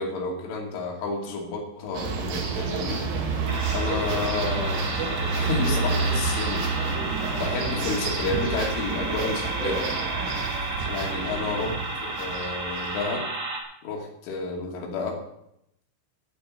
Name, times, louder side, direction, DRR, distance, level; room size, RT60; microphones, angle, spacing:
voice 1, 0.0-3.0 3.7-4.9 5.4-6.7 7.3-10.1 10.9-13.3 13.8-15.2, left 3 dB, 80° left, 0 dB, 5.1 m, -31 dB
sound 1, 1.9-13.0, right 4 dB, 90° right, 4.8 m, -29 dB
sound 2, 3.5-13.6, right 2 dB, 40° right, 1.4 m, -32 dB
11.5 x 8.6 x 8.7 m, 0.78 s
omnidirectional pair, 5.6 m